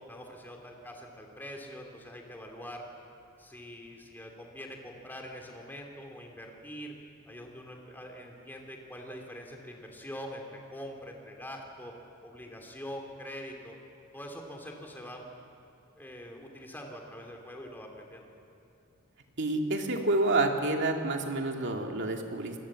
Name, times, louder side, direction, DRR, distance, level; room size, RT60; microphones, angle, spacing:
voice 1, 0.0-2.9 3.4-6.9 7.3-11.9 12.2-13.8 14.1-15.2 16.0-18.3, equal, 10° left, 1 dB, 3.1 m, -44 dB
voice 2, 19.4-22.5, right 2 dB, 55° right, 2 dB, 2.4 m, -28 dB
27.0 x 20.5 x 7.6 m, 2.6 s
head